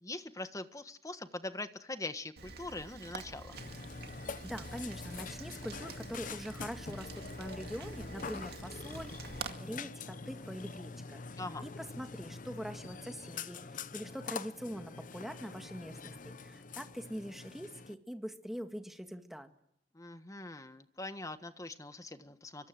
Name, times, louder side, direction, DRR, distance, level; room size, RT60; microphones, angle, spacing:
voice 1, 0.0-3.6 11.4-11.6 19.9-22.7, left 2 dB, 20° left, 10 dB, 1.4 m, -42 dB
Rain, 2.4-9.5, right 4 dB, 60° right, 2.2 m, -47 dB
Burping eructation, 3.5-18.0, left 4 dB, 45° left, 0.9 m, -45 dB
voice 2, 4.4-19.5, equal, ahead, 6 dB, 1.9 m, -43 dB
25.0 x 24.0 x 7.8 m, 0.77 s
head